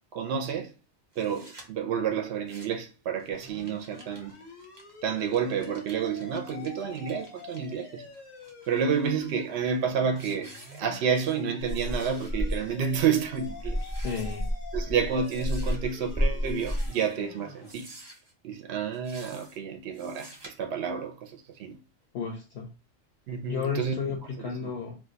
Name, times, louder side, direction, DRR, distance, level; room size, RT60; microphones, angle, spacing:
voice 1, 0.1-0.7 1.2-4.4 5.0-8.1 8.7-13.8 14.7-17.9 18.4-21.8 23.3-24.0 24.3-24.7, right 7 dB, 65° right, 0.8 m, -30 dB
sound 1, 1.1-1.6 2.3-2.9 3.2-7.6 8.1-9.3 9.7-9.9 10.1-11.4 11.7-12.3 12.7-12.8 13.1-13.3 13.7-14.5 15.2-15.8 16.5-17.2 17.6-18.3 18.9-19.6 19.9-20.5, right 1 dB, 30° right, 0.6 m, -51 dB
sound 2, 3.3-17.7, left 4 dB, 90° left, 1.3 m, -48 dB
sound 3, 11.6-16.9, equal, 10° left, 0.7 m, -31 dB
voice 2, 14.0-14.5 22.1-22.7 23.5-25.0, left 6 dB, 65° left, 0.8 m, -32 dB
2.5 x 2.2 x 3.8 m
omnidirectional pair, 1.3 m